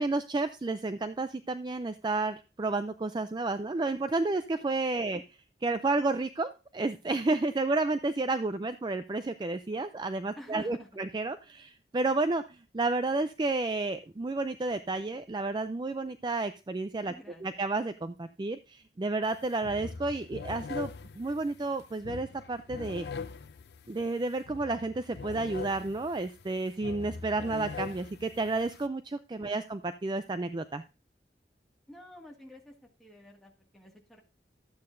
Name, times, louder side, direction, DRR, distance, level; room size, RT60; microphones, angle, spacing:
voice 1, 0.0-5.2 5.6-17.1 17.4-20.9 21.2-23.0 23.9-30.8, right 3 dB, 25° right, 10 dB, 0.4 m, -31 dB
voice 2, 10.4-10.9 17.1-17.6 29.5-29.6 31.9-32.7 33.0-34.2, left 1 dB, ahead, -1 dB, 1.9 m, -49 dB
sound 1, 19.2-19.4 19.6-28.9, left 5 dB, 70° left, 0.5 m, -42 dB
12.5 x 8.5 x 2.6 m, 0.31 s
head